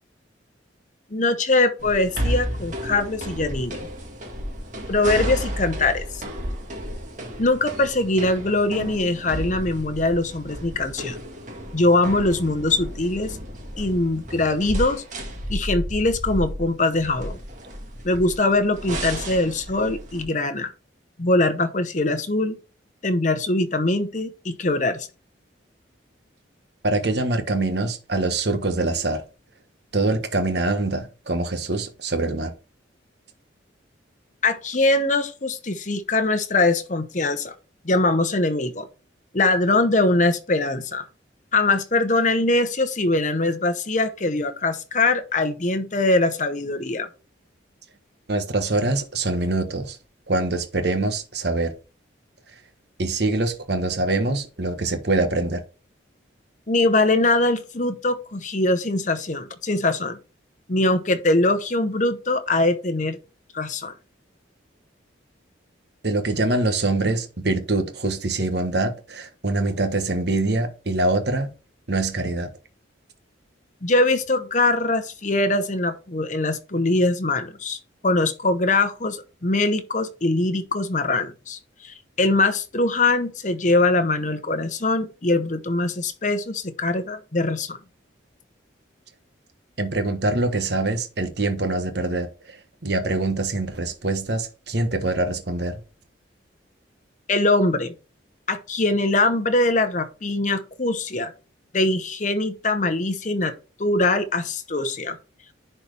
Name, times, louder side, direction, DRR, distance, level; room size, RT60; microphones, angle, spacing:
voice 1, 1.1-3.9 4.9-6.2 7.4-11.2 11.7-13.4 13.8-15.0 15.5-17.4 18.0-20.7 21.2-22.6 23.0-25.1 34.4-37.5 37.8-38.9 39.3-41.0 41.5-47.1 56.7-60.2 60.7-63.2 63.5-63.9 73.8-87.8 97.3-97.9 98.5-101.3 101.7-103.5 103.8-105.2, left 2 dB, 40° left, 0.9 m, -22 dB
sound 1, 1.8-20.2, equal, 40° right, 1.8 m, -32 dB
voice 2, 26.8-29.2 29.9-32.5 48.3-50.0 50.3-51.7 53.0-55.6 66.0-71.5 71.9-72.5 89.8-92.6 92.8-95.8, right 2 dB, 60° right, 1.3 m, -24 dB
10.5 x 4.4 x 3.4 m
head